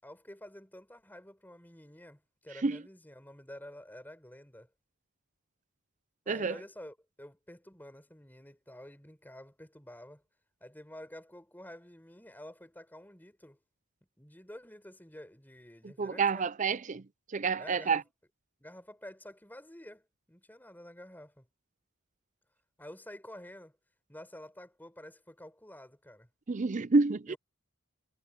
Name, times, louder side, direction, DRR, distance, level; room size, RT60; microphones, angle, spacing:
voice 1, 0.0-4.7 6.2-10.2 10.6-13.6 14.2-16.5 17.6-18.0 18.6-21.5 22.8-23.8 24.1-26.3 27.3-27.4, left 1 dB, 10° left, 4.9 m, -49 dB
voice 2, 15.8-17.0 17.3-18.0 26.5-27.3, right 4 dB, 35° right, 0.5 m, -28 dB
head